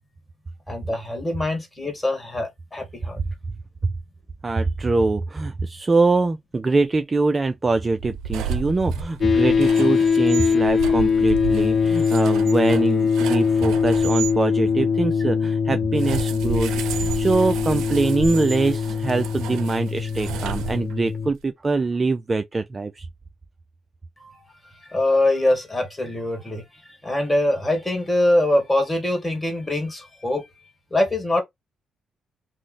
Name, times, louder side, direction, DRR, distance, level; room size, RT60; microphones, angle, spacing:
voice 1, 0.7-3.2 24.2-24.5 24.8-30.5 30.9-31.4, left 1 dB, 10° left, 1.5 m, -23 dB
voice 2, 4.4-23.1, right 3 dB, 25° right, 0.4 m, -23 dB
sound 1, 8.0-14.4 15.9-21.2, right 7 dB, 85° right, 0.5 m, -32 dB
sound 2, 9.2-21.3, left 6 dB, 45° left, 0.4 m, -22 dB
3.1 x 2.1 x 3.9 m
cardioid pair, 90°, 0 cm